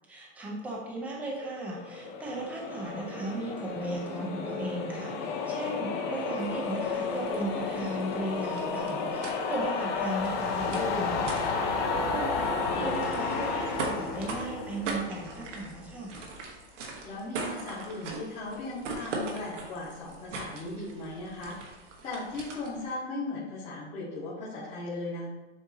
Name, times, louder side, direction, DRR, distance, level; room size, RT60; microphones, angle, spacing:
voice 1, 0.1-16.1, right 1 dB, 5° right, -3 dB, 0.5 m, -36 dB
sound 1, 1.4-15.7, left 4 dB, 45° left, 0.7 m, -32 dB
sound 2, 6.4-22.9, right 3 dB, 90° right, 1.2 m, -41 dB
voice 2, 12.6-13.1 17.0-21.5 22.0-25.3, left 2 dB, 20° left, -9 dB, 1.0 m, -37 dB
7.3 x 2.7 x 2.7 m, 1.1 s
supercardioid pair, 150°, 35 cm